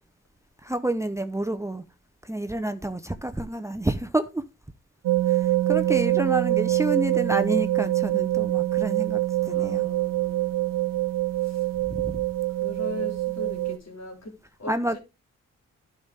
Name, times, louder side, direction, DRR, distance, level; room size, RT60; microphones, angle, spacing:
voice 1, 0.6-1.8 2.2-4.4 5.3-9.9 11.9-12.2 14.7-15.0, right 1 dB, 10° right, 0.9 m, -29 dB
sound 1, 5.0-13.8, right 16 dB, 75° right, 0.6 m, -25 dB
voice 2, 9.4-11.1 11.4-11.7 12.6-14.3 14.6-15.0, left 2 dB, 50° left, 3.5 m, -40 dB
11.5 x 5.9 x 3.6 m
supercardioid pair, 45°, 33 cm